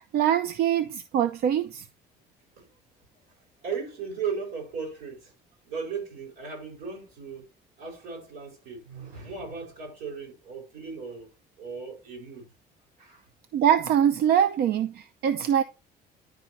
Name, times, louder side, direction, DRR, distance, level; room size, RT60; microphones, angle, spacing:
voice 1, 0.0-1.9 13.5-15.6, right 9 dB, 70° right, 0.6 m, -23 dB
voice 2, 3.6-5.3 5.6-7.5 7.8-11.3 11.6-12.5 13.0-13.3, right 5 dB, 90° right, 5.0 m, -36 dB
10.5 x 4.6 x 4.1 m
cardioid pair, 110°, 17 cm